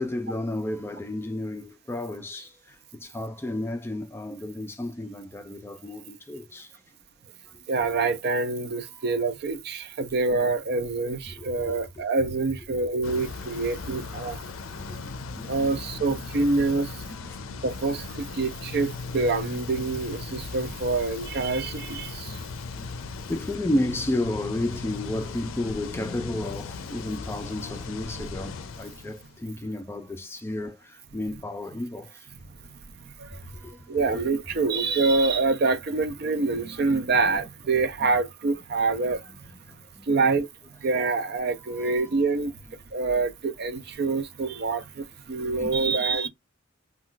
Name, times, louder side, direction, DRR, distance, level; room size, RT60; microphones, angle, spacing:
voice 1, 0.0-2.5 3.0-6.7 8.9-9.1 11.3-11.8 15.4-15.8 17.0-17.7 22.2-22.4 22.8-22.9 23.2-32.1 33.5-33.8 39.3-39.4 40.0-40.1 41.6-42.2 45.6-46.0, left 1 dB, 10° left, 0.3 m, -32 dB
voice 2, 7.7-14.4 15.5-16.9 17.6-22.3 33.9-39.2 40.1-40.5 40.8-42.5 42.9-46.3, right 3 dB, 55° right, 0.5 m, -26 dB
sound 1, 13.0-29.4, left 4 dB, 85° left, 0.4 m, -38 dB
2.3 x 2.3 x 3.7 m
head